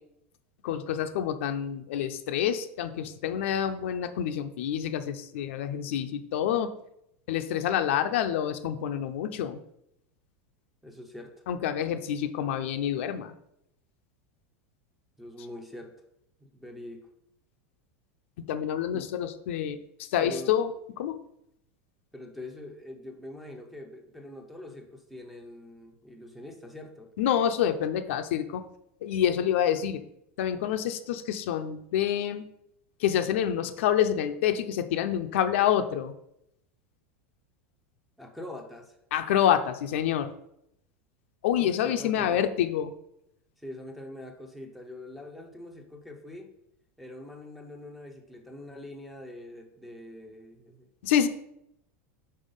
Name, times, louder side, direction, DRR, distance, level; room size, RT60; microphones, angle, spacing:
voice 1, 0.6-6.7 7.3-9.6 11.5-13.3 18.5-19.8 20.1-20.7 21.0-21.2 27.2-28.6 29.0-30.0 30.4-32.4 33.0-36.1 39.1-40.3 41.4-42.9 51.0-51.3, left 10 dB, 65° left, 8 dB, 0.6 m, -27 dB
voice 2, 10.8-11.4 15.2-16.0 16.4-17.1 18.9-19.1 20.2-20.6 22.1-27.1 38.2-39.0 41.6-42.4 43.6-46.5 47.0-50.9, left 1 dB, ahead, 5 dB, 0.6 m, -44 dB
5.4 x 4.5 x 5.4 m, 0.78 s
supercardioid pair, 170°, 7 cm